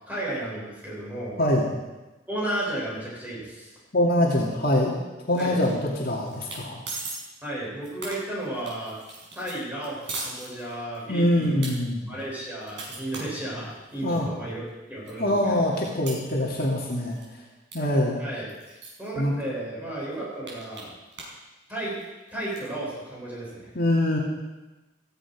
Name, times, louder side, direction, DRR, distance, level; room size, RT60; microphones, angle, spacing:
voice 1, 0.0-1.4 2.3-3.8 5.4-5.6 7.4-9.0 9.3-11.6 12.1-15.8 18.2-20.9 21.7-22.0 22.3-23.7, right 1 dB, 10° right, -7 dB, 7.4 m, -34 dB
voice 2, 3.9-5.0 5.3-6.8 11.1-12.1 14.0-14.3 15.2-17.2 17.7-18.2 19.2-19.3 23.7-24.2, left 1 dB, 50° left, -3 dB, 2.5 m, -24 dB
sound 1, 5.3-6.0 6.3-6.6 6.9-7.2 7.6-11.0 11.4-11.7 12.2-14.2 14.7-14.8 15.1-16.8 17.1-17.3 17.7-17.8 18.0-18.1 18.5-19.1 19.6-19.7 20.0-21.4 21.7-22.7, right 3 dB, 65° right, 5.8 m, -39 dB
16.5 x 15.0 x 4.9 m, 1.1 s
head